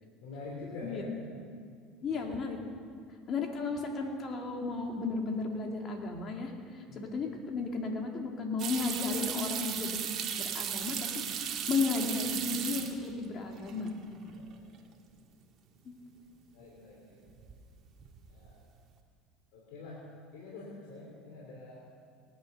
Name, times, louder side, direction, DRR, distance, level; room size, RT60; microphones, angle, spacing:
voice 1, 0.2-1.1 2.0-2.4 6.9-7.2 14.3-14.8 15.1-15.2 16.5-17.2 18.3-18.7 19.5-20.0 20.3-21.8, left 2 dB, 75° left, -4 dB, 3.3 m, -46 dB
voice 2, 2.0-2.6 3.3-14.3 15.8-15.9, left 4 dB, 40° left, 2 dB, 2.6 m, -34 dB
sound 1, 8.6-13.3 13.6-14.2 14.5-14.6 17.3-17.7 18.0-18.5, right 9 dB, 50° right, 1.7 m, -36 dB
18.5 x 10.0 x 6.8 m, 2.1 s
supercardioid pair, 105°, 0 cm